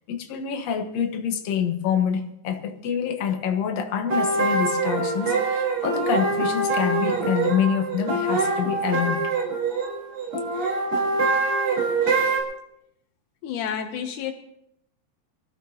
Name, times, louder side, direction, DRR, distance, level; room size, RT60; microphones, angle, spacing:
voice 1, 0.1-9.3, left 8 dB, 65° left, 1.7 m, -26 dB
sound 1, 4.1-12.4, right 3 dB, 30° right, 4.6 m, -24 dB
voice 2, 13.4-14.3, left 8 dB, 90° left, 1.7 m, -30 dB
24.0 x 14.5 x 2.9 m
omnidirectional pair, 4.8 m